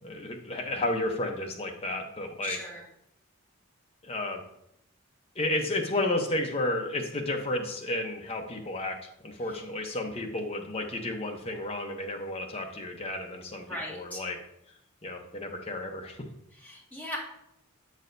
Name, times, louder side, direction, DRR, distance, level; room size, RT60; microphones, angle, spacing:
voice 1, 0.0-2.6 4.0-4.4 5.3-14.4 15.0-16.2, left 2 dB, 30° left, 2 dB, 0.8 m, -32 dB
voice 2, 2.4-2.8 9.5-9.6 13.5-14.2 16.5-17.2, left 1 dB, 10° left, -5 dB, 1.7 m, -39 dB
7.3 x 6.3 x 2.6 m, 0.78 s
head